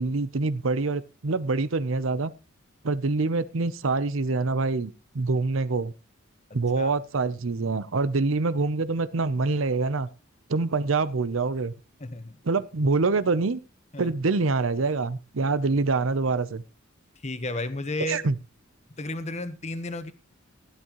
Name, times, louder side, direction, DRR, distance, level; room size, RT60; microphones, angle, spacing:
voice 1, 0.0-2.3 2.8-5.9 6.5-10.1 10.5-11.7 12.4-13.6 14.0-16.6 18.1-18.3, right 3 dB, 75° right, 0.7 m, -25 dB
voice 2, 12.0-12.4 13.9-14.1 17.2-18.2 19.0-20.1, left 2 dB, 35° left, 1.2 m, -32 dB
16.0 x 11.0 x 3.1 m
head